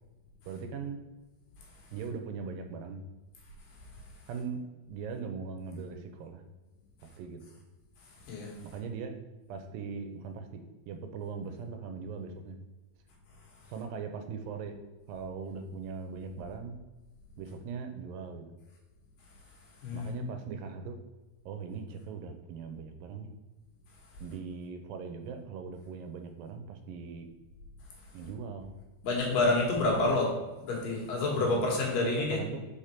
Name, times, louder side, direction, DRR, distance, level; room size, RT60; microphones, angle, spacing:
voice 1, 0.5-1.0 1.9-3.0 4.3-6.4 7.0-7.4 8.6-9.1 9.5-12.6 13.7-14.8 15.1-16.8 17.4-18.5 19.9-21.0 21.5-23.3 24.2-27.3 28.1-28.7 30.1-30.2 31.4-31.6 32.0-32.6, right 5 dB, 85° right, 6 dB, 2.3 m, -40 dB
voice 2, 8.2-8.5 19.8-20.2 29.0-30.3 30.6-32.4, left 2 dB, 75° left, -1 dB, 3.0 m, -28 dB
5.3 x 5.0 x 4.3 m, 1.2 s
omnidirectional pair, 4.1 m